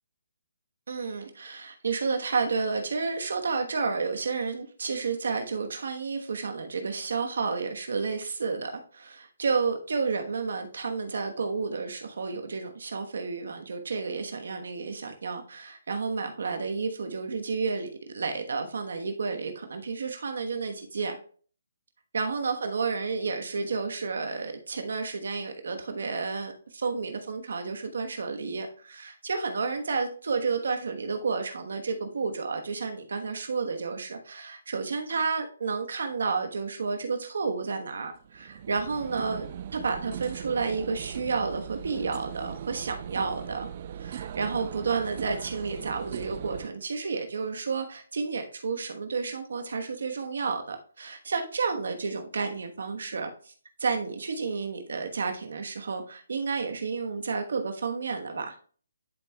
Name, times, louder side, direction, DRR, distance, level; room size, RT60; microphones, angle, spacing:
voice 1, 0.9-17.9 18.1-21.2 22.1-43.7 44.0-53.5 53.8-58.5, right 4 dB, 70° right, 5 dB, 1.1 m, -31 dB
sound 1, 37.9-46.7, right 9 dB, 40° right, 0.4 m, -39 dB
10.5 x 5.4 x 2.2 m, 0.43 s
hypercardioid pair, 155°, 0 cm